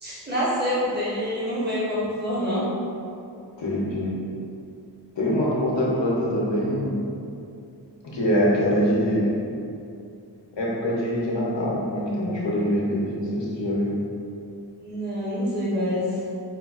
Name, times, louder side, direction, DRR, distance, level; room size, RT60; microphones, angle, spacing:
voice 1, 0.0-2.7 14.8-16.2, equal, 25° right, -8 dB, 0.9 m, -26 dB
voice 2, 3.6-4.1 5.2-6.9 8.0-9.4 10.5-14.0, equal, 90° left, -5 dB, 0.8 m, -24 dB
4.8 x 2.2 x 2.4 m, 2.6 s
wide cardioid pair, 70°, 42 cm